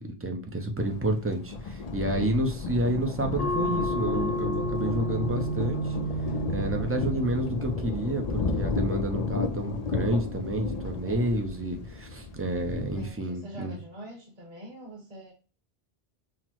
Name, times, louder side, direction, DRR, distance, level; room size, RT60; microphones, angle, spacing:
voice 1, 0.0-6.0 6.5-13.8, right 1 dB, 20° right, 4 dB, 0.4 m, -30 dB
Thunder, 0.8-13.1, left 3 dB, 50° left, 0.5 m, -33 dB
sound 1, 3.4-8.5, right 1 dB, 65° left, 1.1 m, -32 dB
voice 2, 12.9-15.3, equal, 40° right, -1 dB, 1.3 m, -44 dB
5.9 x 2.0 x 2.9 m, 0.36 s
omnidirectional pair, 1.1 m